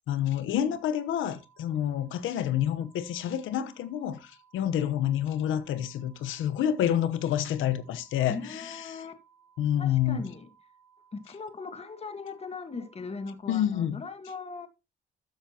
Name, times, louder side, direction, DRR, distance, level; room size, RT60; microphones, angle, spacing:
voice 1, 0.1-9.0 9.6-10.3 13.5-14.0, left 10 dB, 85° left, 1.0 m, -28 dB
sound 1, 0.7-13.4, right 7 dB, 85° right, 2.5 m, -62 dB
voice 2, 8.3-9.1 9.8-10.5 11.1-14.7, left 4 dB, 30° left, 1.5 m, -39 dB
12.0 x 8.4 x 2.9 m
cardioid pair, 90°, 20 cm